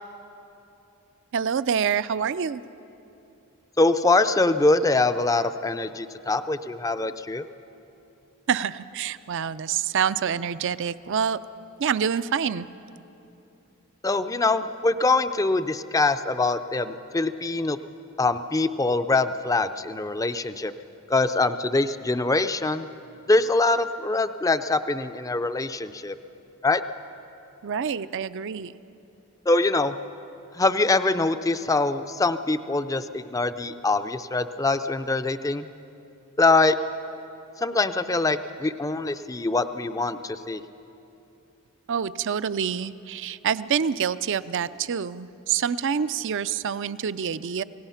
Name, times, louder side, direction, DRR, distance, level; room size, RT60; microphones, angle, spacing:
voice 1, 1.3-2.6 8.5-11.4 11.8-12.7 27.6-28.7 41.9-47.6, right 7 dB, 60° right, 15 dB, 0.5 m, -26 dB
voice 2, 3.8-7.4 14.0-17.8 18.2-20.7 21.1-22.9 23.3-26.2 26.6-26.8 29.5-30.0 30.5-35.6 36.4-36.8 37.6-40.6, left 3 dB, 15° left, 11 dB, 0.5 m, -23 dB
25.5 x 18.0 x 5.7 m, 2.9 s
head